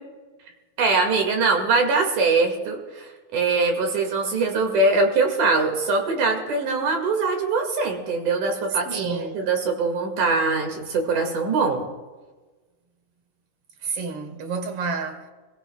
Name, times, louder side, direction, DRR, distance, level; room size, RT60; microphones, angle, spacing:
voice 1, 0.8-11.8, right 3 dB, 85° right, 3.4 m, -22 dB
voice 2, 8.9-9.4 13.8-15.3, right 4 dB, 55° right, 1.9 m, -30 dB
26.5 x 16.0 x 2.2 m
omnidirectional pair, 3.5 m